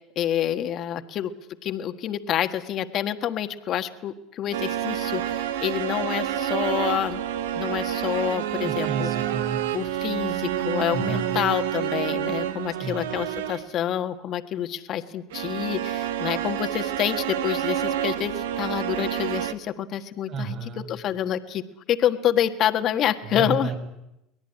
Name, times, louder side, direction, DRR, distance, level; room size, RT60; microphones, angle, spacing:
voice 1, 0.1-1.3 1.6-7.2 7.5-9.1 9.7-20.5 20.9-21.6 21.9-23.7, left 10 dB, 50° left, 8 dB, 1.6 m, -27 dB
sound 1, 4.5-13.8 15.3-19.5, right 11 dB, 90° right, 1.2 m, -28 dB
voice 2, 8.6-9.6 10.9-11.4 12.8-13.0 20.3-20.9 23.2-23.7, right 5 dB, 45° right, 6 dB, 5.4 m, -31 dB
23.0 x 18.0 x 10.0 m, 0.87 s
supercardioid pair, 100°, 0 cm